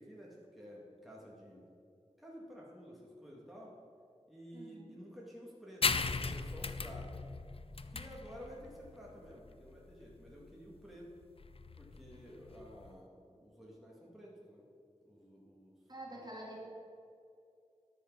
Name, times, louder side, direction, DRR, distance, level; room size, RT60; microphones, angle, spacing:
voice 1, 0.0-1.7 2.2-3.8 4.3-7.3 7.9-11.1 11.8-14.7 15.0-15.8 16.1-16.2, equal, ahead, -4 dB, 1.9 m, -52 dB
voice 2, 4.5-5.0 15.9-16.7, right 1 dB, 35° right, -3 dB, 2.4 m, -47 dB
sound 1, 5.8-12.9, left 4 dB, 50° left, 0.5 m, -38 dB
11.5 x 4.9 x 6.0 m, 2.5 s
wide cardioid pair, 50°, 12 cm